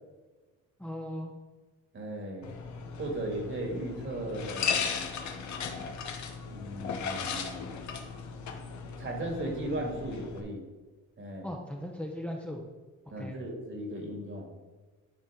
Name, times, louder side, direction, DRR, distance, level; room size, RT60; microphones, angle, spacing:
voice 1, 0.8-1.3 11.4-12.6 13.1-13.4, equal, 5° left, 0 dB, 0.8 m, -38 dB
voice 2, 1.9-2.6 3.0-4.9 5.4-5.5 6.5-7.9 9.0-10.6 11.2-11.5 13.1-14.5, right 1 dB, 40° right, 1 dB, 2.0 m, -37 dB
sound 1, 2.4-10.4, left 6 dB, 70° left, 0.9 m, -36 dB
10.5 x 4.1 x 3.9 m, 1.3 s
cardioid pair, 90°, 30 cm